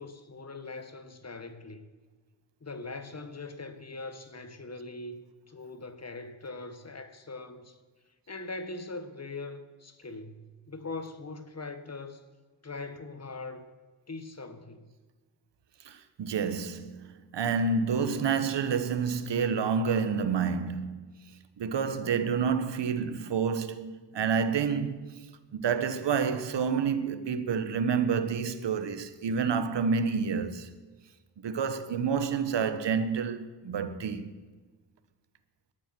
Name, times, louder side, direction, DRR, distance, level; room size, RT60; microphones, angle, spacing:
voice 1, 0.0-1.9 2.6-5.2 5.5-7.8 8.3-12.2 12.6-13.7 14.1-14.8, left 3 dB, 35° left, 1.8 m, -41 dB
voice 2, 15.8-21.1 21.6-25.1 25.5-30.7 31.4-34.3, right 6 dB, 80° right, 1.3 m, -29 dB
18.5 x 12.5 x 6.1 m
cardioid pair, 70°, 42 cm